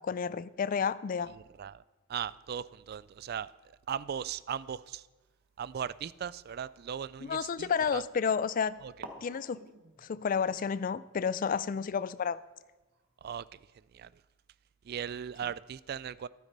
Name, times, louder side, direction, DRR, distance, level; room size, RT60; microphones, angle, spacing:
voice 1, 0.0-1.3 7.3-8.8 9.2-9.7 10.0-12.4, left 6 dB, 40° left, 0.4 m, -31 dB
voice 2, 2.1-3.5 3.9-5.0 5.6-8.0 8.8-8.9 13.2-13.6 13.9-14.1 14.9-16.3, right 8 dB, 50° right, 0.3 m, -38 dB
sound 1, 5.2-8.1 8.7-8.8 9.0-13.6, right 2 dB, 70° right, 1.4 m, -55 dB
12.0 x 9.3 x 5.4 m
head